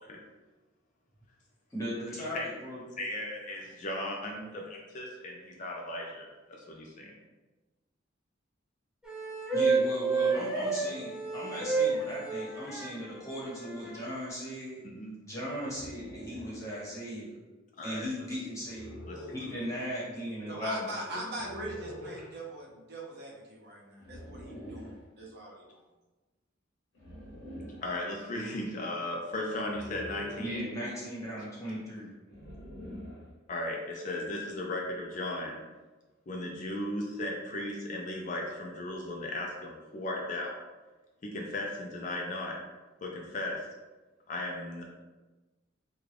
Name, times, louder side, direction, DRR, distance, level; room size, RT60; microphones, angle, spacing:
voice 1, 1.7-2.8 9.5-14.8 15.2-17.4 17.8-19.0 19.3-20.9 30.4-32.1, equal, 15° left, -7 dB, 1.1 m, -37 dB
voice 2, 3.0-7.1 14.8-15.2 17.8-18.3 19.1-19.4 27.8-30.7 33.5-35.6 36.3-40.6 41.2-42.6 43.0-43.6 44.3-44.8, left 1 dB, 40° left, -1 dB, 0.4 m, -36 dB
sound 1, 9.0-12.9 13.7-14.3, right 4 dB, 5° right, 0.6 m, -29 dB
sound 2, 15.7-16.6 18.6-19.6 21.3-22.3 24.0-25.0 26.9-27.9 29.6-30.6 32.3-33.3, equal, 75° left, 0.9 m, -45 dB
voice 3, 20.5-25.9, right 1 dB, 55° right, -3 dB, 0.7 m, -41 dB
3.6 x 2.2 x 3.2 m, 1.2 s
head